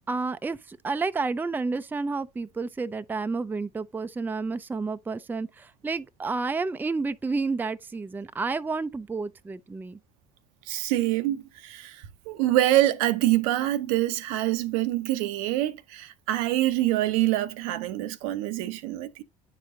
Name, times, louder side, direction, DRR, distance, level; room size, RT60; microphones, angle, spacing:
voice 1, 0.1-10.0, right 4 dB, 10° right, 0.4 m, -30 dB
voice 2, 10.7-19.2, right 15 dB, 70° right, 0.6 m, -25 dB
9.6 x 4.9 x 2.5 m
hypercardioid pair, 60°, 18 cm